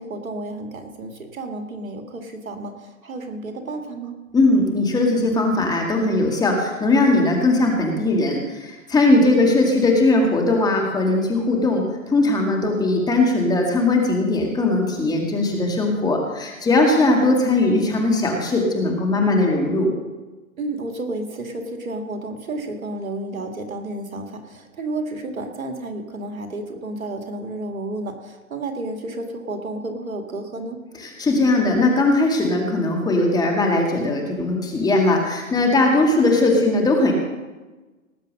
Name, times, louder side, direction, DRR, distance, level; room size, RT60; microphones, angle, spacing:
voice 1, 0.0-4.2 16.9-17.3 20.6-30.8, right 2 dB, 80° right, 5 dB, 2.3 m, -31 dB
voice 2, 4.3-19.9 31.0-37.1, left 2 dB, 10° left, 1 dB, 2.0 m, -19 dB
18.5 x 7.5 x 6.2 m, 1.2 s
hypercardioid pair, 130°, 41 cm